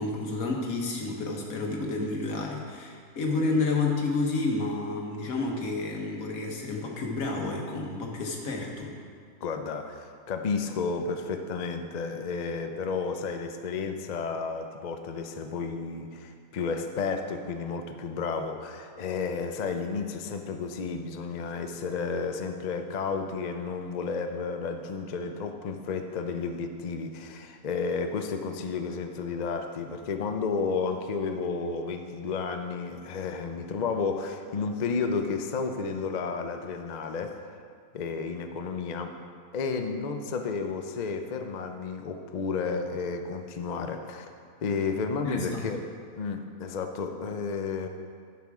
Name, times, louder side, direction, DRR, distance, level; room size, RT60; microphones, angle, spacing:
voice 1, 0.0-8.9 45.2-45.6, left 3 dB, 80° left, 0 dB, 1.6 m, -30 dB
voice 2, 9.4-37.6 37.9-39.1 39.5-44.3 44.6-45.8 46.1-47.9, left 4 dB, 50° left, 6 dB, 0.5 m, -32 dB
10.5 x 6.0 x 4.9 m, 2.1 s
omnidirectional pair, 1.4 m